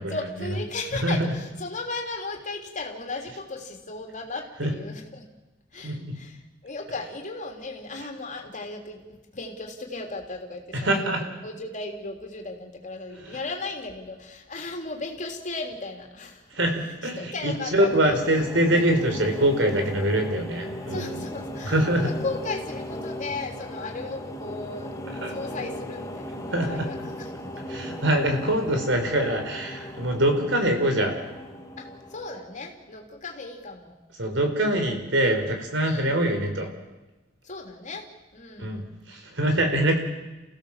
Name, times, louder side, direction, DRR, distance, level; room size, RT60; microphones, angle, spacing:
voice 1, 0.1-5.2 5.7-11.1 11.4-16.5 16.8-18.8 20.9-25.0 25.3-27.6 31.8-33.9 35.8-36.2 37.4-38.1 38.3-38.9, left 3 dB, 40° left, 3 dB, 3.3 m, -36 dB
voice 2, 5.8-6.1 10.7-11.2 13.2-13.4 16.6-21.2 21.6-22.1 25.2-25.3 26.5-26.9 27.7-31.1 34.2-36.7 38.6-38.8 39.1-40.0, right 1 dB, 70° right, 5 dB, 4.3 m, -24 dB
sound 1, 17.4-32.8, left 1 dB, 15° left, 2.2 m, -37 dB
29.0 x 16.0 x 7.4 m, 1.1 s
head